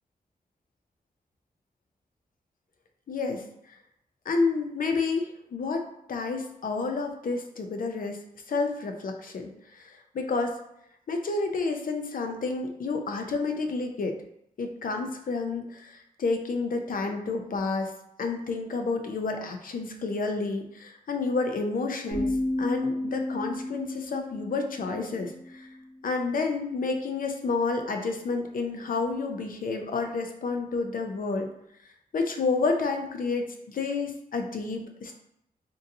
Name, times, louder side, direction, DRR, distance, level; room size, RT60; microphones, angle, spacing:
voice 1, 3.1-3.4 4.3-5.8 6.1-8.2 8.5-10.6 11.1-14.2 14.6-17.9 18.2-22.3 22.6-25.7 26.0-31.5 32.1-35.1, left 4 dB, 65° left, 4 dB, 0.5 m, -30 dB
sound 1, 22.1-26.0, left 1 dB, 35° left, 1.0 m, -32 dB
3.8 x 2.6 x 2.6 m, 0.77 s
wide cardioid pair, 115°, 16 cm